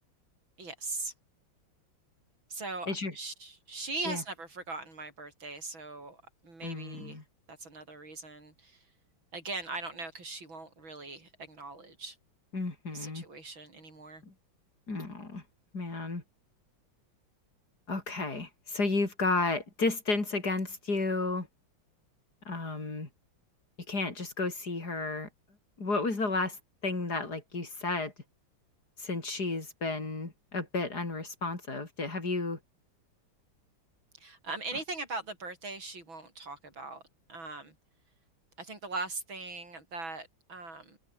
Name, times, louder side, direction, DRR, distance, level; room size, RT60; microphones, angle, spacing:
voice 1, 0.6-1.1 2.5-7.2 7.5-8.9 9.3-12.2 12.9-14.2 34.2-37.0 37.3-37.7 38.6-41.0, right 3 dB, 80° right, 7.5 m, -40 dB
voice 2, 6.6-7.2 12.5-13.2 14.2-14.3 14.9-15.4 15.7-16.2 17.9-21.5 22.4-23.1 23.9-25.3 25.8-28.1 29.0-32.6, left 3 dB, 50° left, 5.1 m, -32 dB
omnidirectional pair, 2.1 m